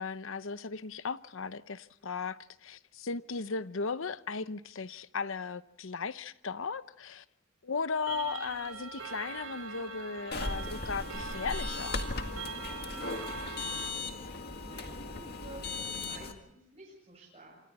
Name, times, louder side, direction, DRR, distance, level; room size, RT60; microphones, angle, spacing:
voice 1, 0.0-7.2 7.6-12.0, left 5 dB, 70° left, 0.8 m, -36 dB
Clock, 8.1-13.9, right 4 dB, 85° right, 5.2 m, -42 dB
sound 1, 10.3-16.3, left 3 dB, 50° left, 2.0 m, -37 dB
voice 2, 14.6-17.6, right 2 dB, 30° right, 7.7 m, -51 dB
27.5 x 27.0 x 4.2 m
head